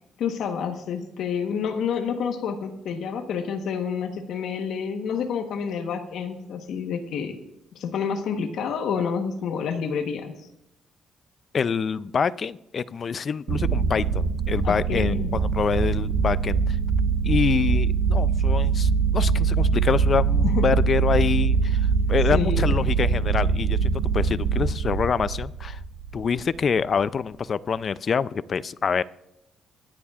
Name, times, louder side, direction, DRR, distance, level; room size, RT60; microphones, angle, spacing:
voice 1, 0.2-7.4 7.7-10.3 14.6-15.3 20.4-20.7 22.3-22.8, left 6 dB, 75° left, 5 dB, 1.1 m, -29 dB
voice 2, 11.5-16.8 17.2-21.8 22.1-25.8 26.1-29.0, left 6 dB, 45° left, 17 dB, 0.4 m, -26 dB
sound 1, 13.5-26.4, right 5 dB, 85° right, 1.4 m, -23 dB
23.5 x 10.0 x 2.4 m, 0.85 s
cardioid pair, 90°, 0 cm